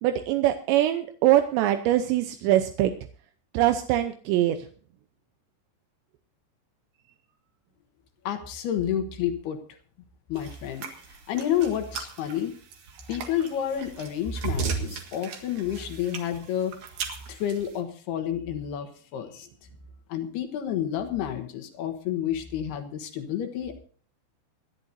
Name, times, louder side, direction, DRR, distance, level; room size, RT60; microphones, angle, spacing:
voice 1, 0.0-2.9 3.5-4.6, right 13 dB, 85° right, 8 dB, 3.0 m, -23 dB
voice 2, 8.2-9.6 10.3-10.8 11.3-12.6 13.1-16.7 17.3-19.5 20.1-23.8, left 10 dB, 70° left, 7 dB, 3.1 m, -30 dB
sound 1, 10.4-17.8, right 6 dB, 55° right, 3.0 m, -36 dB
26.5 x 11.0 x 2.7 m, 0.43 s
omnidirectional pair, 5.1 m